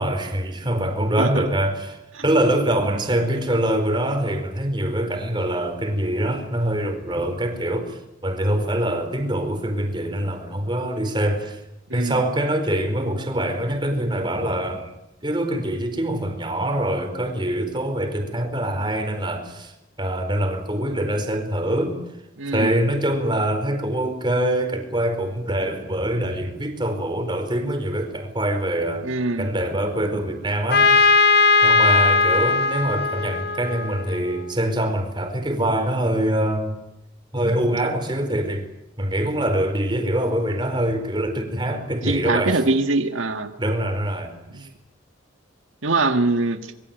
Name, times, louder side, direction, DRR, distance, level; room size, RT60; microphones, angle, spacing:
voice 1, 0.0-11.6 11.9-14.9 15.2-22.0 22.5-29.1 29.4-31.1 31.6-36.8 37.3-38.7 39.0-42.6 43.6-44.7, right 1 dB, 25° right, 4.7 m, -24 dB
voice 2, 22.4-22.7 29.0-29.5 42.0-43.5 44.5-44.7 45.8-46.7, right 2 dB, 85° right, 1.7 m, -23 dB
Trumpet, 30.7-34.4, left 3 dB, 55° left, 1.5 m, -18 dB
25.0 x 23.0 x 9.1 m
head